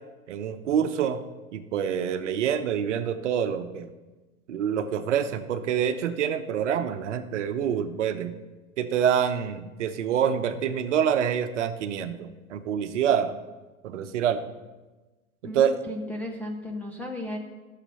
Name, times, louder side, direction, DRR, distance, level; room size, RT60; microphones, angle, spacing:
voice 1, 0.3-1.2 1.5-3.9 4.5-8.3 8.8-13.3 13.8-14.4 15.5-15.8, right 8 dB, 55° right, 10 dB, 0.9 m, -26 dB
voice 2, 15.4-17.4, left 1 dB, 5° left, -2 dB, 0.4 m, -35 dB
13.0 x 6.7 x 5.5 m, 1.2 s
figure-of-eight pair, 105°, 42 cm